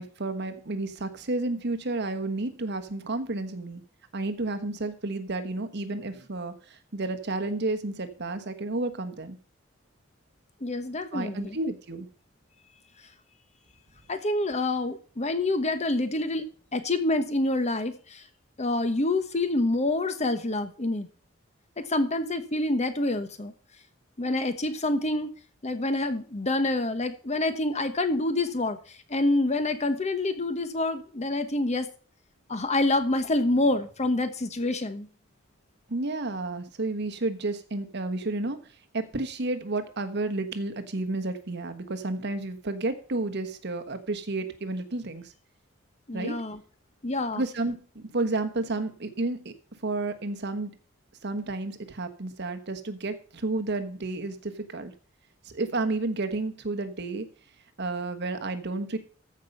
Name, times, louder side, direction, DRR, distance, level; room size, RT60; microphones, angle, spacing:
voice 1, 0.0-3.8 4.1-9.4 11.1-12.1 35.9-38.6 38.9-45.3 46.1-46.4 47.3-49.5 49.8-50.7 51.2-54.9 55.4-57.3 57.8-59.0, right 2 dB, 55° right, 8 dB, 1.2 m, -31 dB
voice 2, 10.6-11.6 14.1-18.2 18.6-21.1 21.8-23.5 24.2-25.3 25.6-28.8 29.1-31.9 32.5-35.1 46.1-46.6 47.0-47.4, left 2 dB, 35° left, 11 dB, 1.1 m, -27 dB
14.0 x 5.3 x 5.5 m, 0.40 s
head